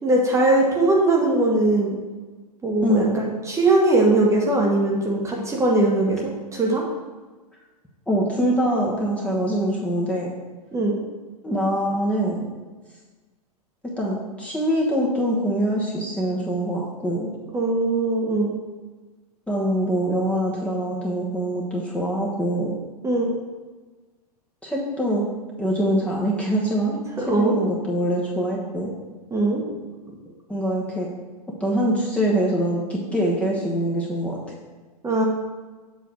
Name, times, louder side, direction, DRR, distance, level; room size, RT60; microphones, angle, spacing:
voice 1, 0.0-2.0 2.6-6.8 10.7-11.0 17.5-18.5 23.0-23.4 27.3-27.5 29.3-29.6 35.0-35.2, right 2 dB, 15° right, -1 dB, 1.3 m, -20 dB
voice 2, 8.1-10.3 11.4-12.4 14.0-17.3 19.5-22.8 24.6-25.2 25.6-26.9 27.3-28.9 30.5-31.1 31.6-34.4, equal, 5° left, -4 dB, 1.2 m, -24 dB
7.3 x 3.3 x 6.2 m, 1.3 s
hypercardioid pair, 110°, 20 cm